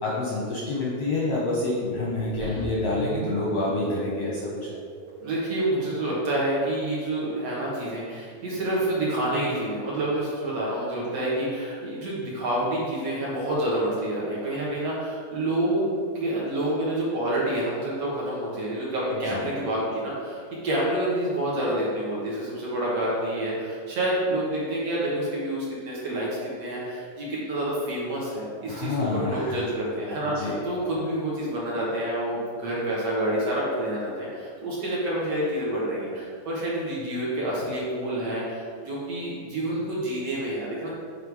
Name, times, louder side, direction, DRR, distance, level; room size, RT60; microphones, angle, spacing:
voice 1, 0.0-4.4 4.7-4.8 19.3-19.4 28.7-29.6 30.2-30.6, left 2 dB, 70° left, -5 dB, 1.5 m, -27 dB
sound 1, 2.3-6.5, right 6 dB, 85° right, 1.6 m, -39 dB
voice 2, 5.2-40.9, right 1 dB, 55° right, -6 dB, 2.1 m, -28 dB
9.2 x 3.4 x 4.7 m, 2.1 s
omnidirectional pair, 3.9 m